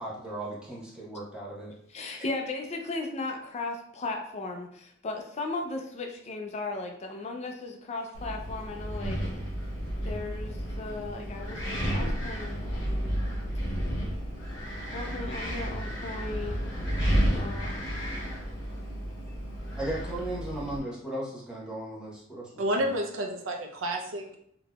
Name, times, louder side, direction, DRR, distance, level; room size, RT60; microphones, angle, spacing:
voice 1, 0.0-1.7 19.8-22.8, right 1 dB, 5° right, -6 dB, 0.9 m, -36 dB
voice 2, 1.9-9.2 10.0-13.3 14.9-16.8 17.3-17.8 18.1-18.3, left 3 dB, 35° left, 3 dB, 0.4 m, -36 dB
Wind, 8.1-20.8, equal, 65° left, 1.4 m, -32 dB
voice 3, 22.6-24.4, right 1 dB, 75° right, 3 dB, 0.5 m, -30 dB
3.9 x 2.7 x 2.3 m, 0.68 s
head